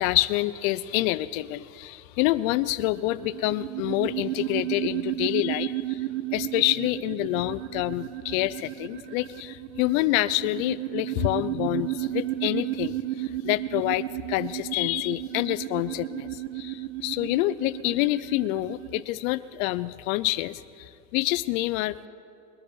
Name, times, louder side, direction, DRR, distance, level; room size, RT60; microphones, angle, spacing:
voice 1, 0.0-6.0 6.3-22.1, left 17 dB, 80° left, 15 dB, 0.5 m, -27 dB
sound 1, 2.7-19.0, right 15 dB, 70° right, 0.5 m, -33 dB
21.5 x 9.8 x 4.6 m, 2.5 s
supercardioid pair, 140°, 40 cm